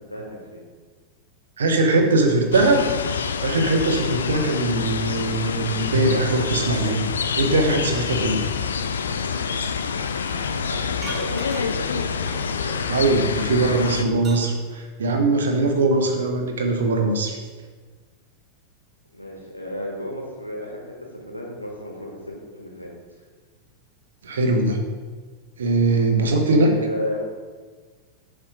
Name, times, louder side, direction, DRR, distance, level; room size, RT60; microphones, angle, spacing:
voice 1, 0.1-0.6 10.2-12.0 16.1-16.2 19.1-22.9 26.5-27.2, left 1 dB, 85° left, -2 dB, 1.3 m, -33 dB
voice 2, 1.6-7.1 7.4-8.4 12.6-17.4 24.2-24.8 25.6-26.7, right 2 dB, 65° right, 3 dB, 0.9 m, -21 dB
sound 1, 2.5-14.0, left 6 dB, 70° left, 0.3 m, -27 dB
Glass Spirit bottles clanking, 11.0-11.9 12.3-13.2 13.6-14.8 15.9-16.0, right 2 dB, 20° right, 1.8 m, -39 dB
7.1 x 3.5 x 4.8 m, 1.5 s
figure-of-eight pair, 90°, 0 cm